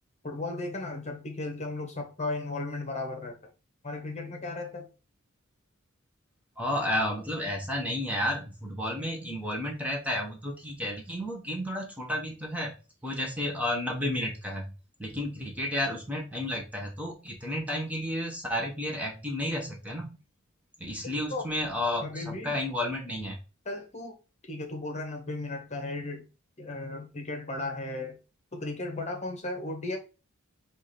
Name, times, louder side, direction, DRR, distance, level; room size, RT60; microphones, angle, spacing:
voice 1, 0.2-3.4 3.8-4.9 21.3-21.4 22.0-22.6 23.6-24.1 24.5-26.3 26.6-28.2 28.5-30.0, left 2 dB, 35° left, 1.1 m, -35 dB
voice 2, 6.6-12.8 13.0-14.7 15.0-20.2 20.8-23.4, left 1 dB, 5° right, 1.0 m, -32 dB
4.8 x 2.6 x 4.1 m
head